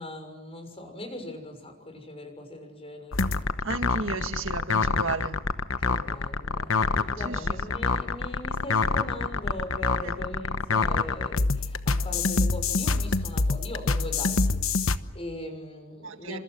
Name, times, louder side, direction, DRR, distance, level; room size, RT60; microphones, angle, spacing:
voice 1, 0.0-3.4 5.8-16.4, left 1 dB, 30° left, 6.4 m, -40 dB
sound 1, 3.1-15.0, left 4 dB, 70° left, 1.1 m, -26 dB
voice 2, 3.6-5.4 7.3-7.4 16.0-16.4, right 3 dB, 65° right, 2.0 m, -33 dB
29.5 x 27.0 x 6.3 m
head